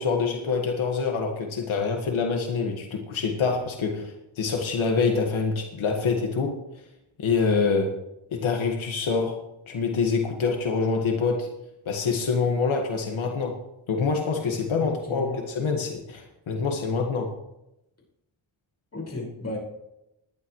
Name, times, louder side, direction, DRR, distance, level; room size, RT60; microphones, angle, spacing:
voice 1, 0.0-6.6 7.2-8.0 8.3-9.4 9.7-11.5 11.9-13.6 13.9-17.3, left 4 dB, 85° left, 1 dB, 1.8 m, -26 dB
voice 2, 14.8-15.4 18.9-19.6, left 2 dB, 30° left, -3 dB, 5.6 m, -34 dB
20.0 x 11.5 x 3.2 m, 0.87 s
wide cardioid pair, 135°, 47 cm